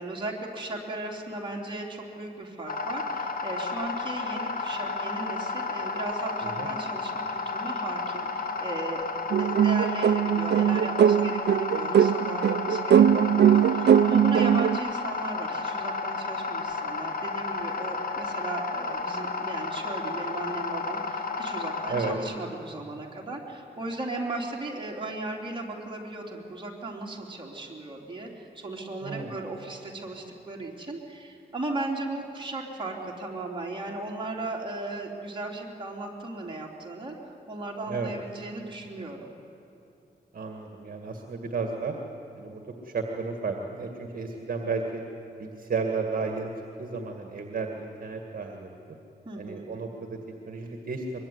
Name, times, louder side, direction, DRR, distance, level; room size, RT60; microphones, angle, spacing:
voice 1, 0.0-39.3 49.2-49.7, right 2 dB, 30° right, -1 dB, 3.4 m, -36 dB
sound 1, 2.7-22.1, left 4 dB, 55° left, 2.2 m, -32 dB
sound 2, 9.3-14.8, right 9 dB, 75° right, 0.5 m, -21 dB
voice 2, 29.0-29.3 37.9-38.1 40.3-42.0 42.4-45.0 45.4-46.5 46.8-48.7 49.4-51.2, right 4 dB, 55° right, 3 dB, 2.0 m, -33 dB
24.0 x 22.5 x 9.7 m, 2.7 s
wide cardioid pair, 130°, 18 cm